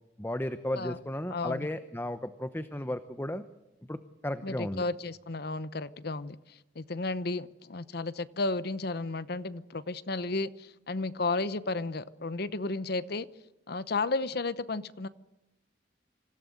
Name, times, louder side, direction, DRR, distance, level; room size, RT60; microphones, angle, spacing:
voice 1, 0.2-3.4 3.9-4.0 4.2-4.8, left 1 dB, 10° left, 10 dB, 0.8 m, -34 dB
voice 2, 1.3-1.7 4.4-6.4 6.8-13.3 13.7-15.1, left 3 dB, 55° left, 15 dB, 0.9 m, -33 dB
26.0 x 16.5 x 7.9 m, 0.97 s
head